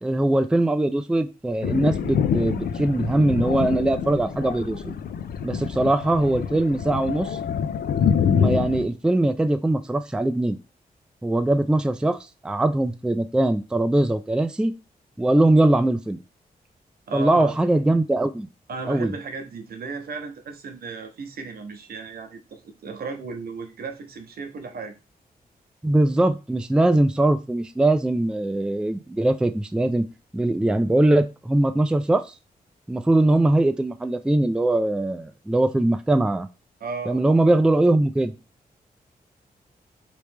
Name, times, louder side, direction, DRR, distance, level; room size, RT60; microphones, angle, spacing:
voice 1, 0.0-4.9 5.4-7.4 8.3-10.6 11.2-12.2 12.4-14.7 15.2-16.2 17.1-18.5 18.9-19.1 25.8-30.1 30.3-32.3 32.9-36.5 37.1-38.3, right 1 dB, 5° right, 9 dB, 0.3 m, -21 dB
Thunder, 1.6-8.9, left 7 dB, 70° left, 0.4 m, -26 dB
voice 2, 17.1-17.5 18.7-24.9 36.8-37.5, right 4 dB, 70° right, 6 dB, 0.7 m, -35 dB
3.1 x 3.0 x 3.3 m, 0.29 s
cardioid pair, 70°, 16 cm